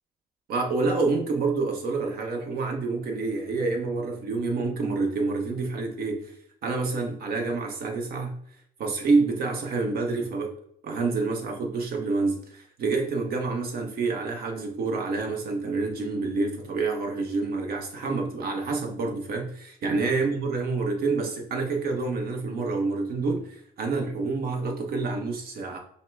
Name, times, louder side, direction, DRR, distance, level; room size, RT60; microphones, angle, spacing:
voice 1, 0.5-6.3 6.6-8.3 8.8-10.5 10.8-25.8, right 3 dB, 65° right, 1.1 m, -28 dB
5.6 x 2.2 x 3.5 m
cardioid pair, 110°, 17 cm